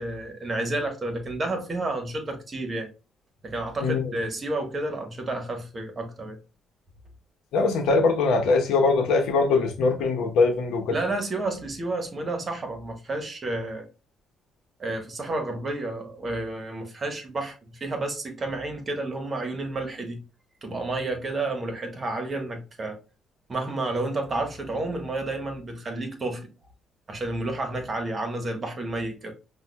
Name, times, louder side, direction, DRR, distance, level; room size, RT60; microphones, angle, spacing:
voice 1, 0.0-2.9 3.4-6.4 10.9-13.9 14.8-20.2 20.6-23.0 23.5-26.5 27.1-29.3, right 2 dB, 35° right, 1.2 m, -30 dB
voice 2, 7.5-10.9, left 4 dB, 85° left, 0.9 m, -22 dB
5.6 x 2.3 x 2.2 m
cardioid pair, 90°, 0 cm